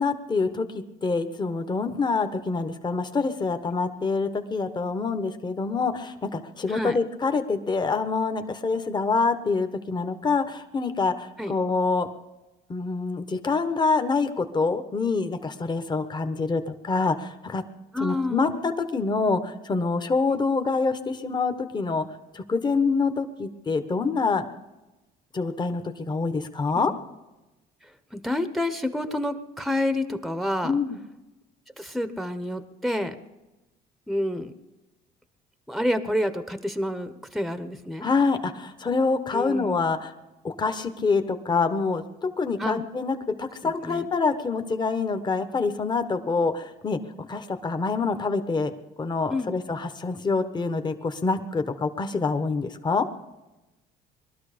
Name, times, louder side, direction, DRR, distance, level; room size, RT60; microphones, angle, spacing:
voice 1, 0.0-12.1 12.7-17.6 18.0-22.0 22.3-24.4 25.3-26.9 30.6-31.0 38.0-40.1 40.4-47.0 47.3-48.7 49.0-53.1, left 4 dB, 25° left, 7 dB, 1.2 m, -26 dB
voice 2, 17.9-18.6 26.7-26.9 28.1-30.7 31.8-33.1 34.1-34.5 35.7-38.1 39.3-39.8 42.6-42.8 43.6-44.1 49.3-49.6, left 1 dB, ahead, 10 dB, 0.9 m, -28 dB
21.0 x 12.5 x 5.1 m, 1.0 s
cardioid pair, 110°, 17 cm